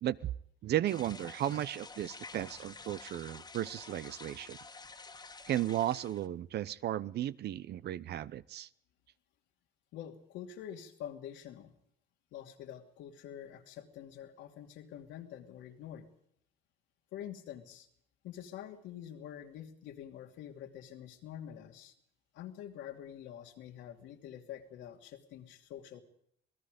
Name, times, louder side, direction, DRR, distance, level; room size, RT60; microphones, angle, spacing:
voice 1, 0.0-0.3 0.6-4.6 5.5-8.7, right 12 dB, 60° right, 18 dB, 0.7 m, -35 dB
sound 1, 0.9-6.3, left 3 dB, 20° left, 1.7 m, -50 dB
voice 2, 9.9-11.7 12.3-16.0 17.1-17.9 18.2-21.9 22.3-26.0, left 10 dB, 85° left, 4 dB, 2.6 m, -46 dB
27.5 x 19.0 x 5.1 m, 0.68 s
cardioid pair, 105°, 19 cm